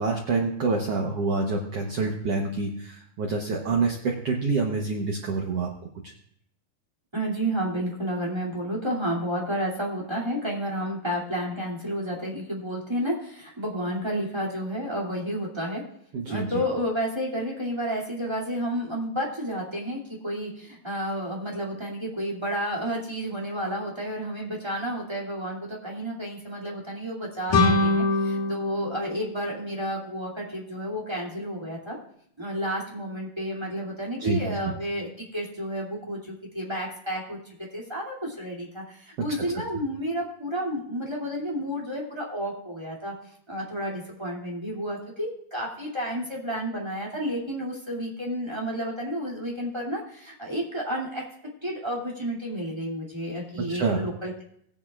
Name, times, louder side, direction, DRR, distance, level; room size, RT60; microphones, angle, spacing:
voice 1, 0.0-5.7 6.0-6.1 16.1-16.6 34.2-34.7 39.2-39.4 39.7-39.8 53.7-54.0, right 4 dB, 80° right, 1 dB, 1.3 m, -27 dB
voice 2, 7.1-15.8 16.3-32.0 32.4-36.2 36.5-43.1 43.5-51.2 51.6-54.4, equal, 10° right, -3 dB, 1.9 m, -31 dB
sound 1, 27.5-30.3, left 2 dB, 65° left, 3.6 m, -25 dB
18.5 x 9.9 x 2.4 m, 0.69 s
omnidirectional pair, 4.3 m